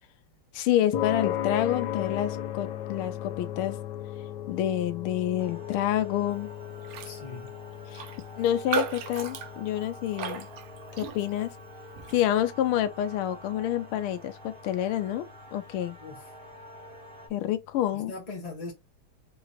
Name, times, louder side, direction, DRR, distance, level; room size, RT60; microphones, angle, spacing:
voice 1, 0.5-3.8 4.5-6.5 7.9-8.0 8.4-10.5 10.9-11.6 12.1-16.0 17.3-18.1, left 11 dB, 90° left, 1.5 m, -28 dB
sound 1, 0.9-17.4, left 11 dB, 65° left, 1.2 m, -38 dB
sound 2, 5.4-17.3, right 1 dB, 30° right, 1.4 m, -49 dB
Raindrop, 6.8-7.2 7.5-7.6 7.9-11.5 12.0-12.2, right 8 dB, 70° right, 0.9 m, -36 dB
voice 2, 7.0-7.5 16.0-16.3 17.9-18.7, left 3 dB, 25° left, 0.9 m, -40 dB
3.9 x 3.0 x 4.1 m
omnidirectional pair, 2.3 m